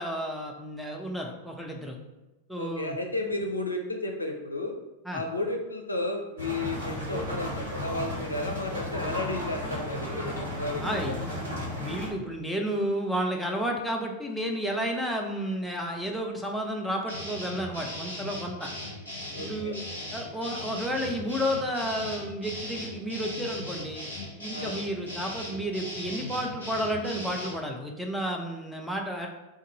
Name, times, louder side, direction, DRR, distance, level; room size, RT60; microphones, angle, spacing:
voice 1, 0.0-2.0 2.5-3.0 5.1-5.2 10.8-18.7 19.4-19.8 20.1-24.0 24.4-29.3, equal, ahead, 0 dB, 0.5 m, -32 dB
voice 2, 2.6-4.7 5.1-11.1 19.3-19.8 24.5-24.8, left 2 dB, 80° left, 2 dB, 0.4 m, -33 dB
sound 1, 6.4-12.1, left 1 dB, 65° right, 1.3 m, -34 dB
sound 2, 17.1-27.6, left 1 dB, 90° right, 1.0 m, -38 dB
2.6 x 2.5 x 4.0 m, 1.1 s
figure-of-eight pair, 90°, 0 cm